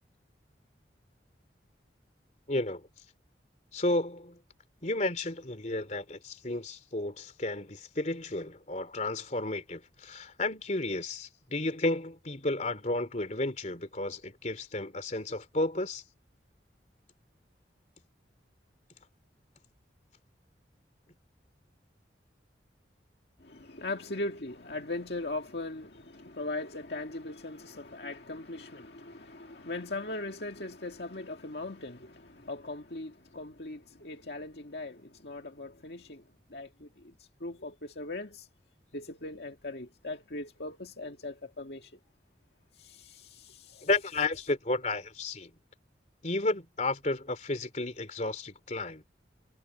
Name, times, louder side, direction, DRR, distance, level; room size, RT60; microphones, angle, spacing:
voice 1, 2.5-2.9 3.7-4.4 4.8-16.0 43.8-45.5 46.2-49.1, left 2 dB, 40° left, 3.3 m, -32 dB
voice 2, 23.4-36.2 36.5-38.5 38.9-41.9 42.7-43.9, left 2 dB, 65° left, 2.0 m, -39 dB
head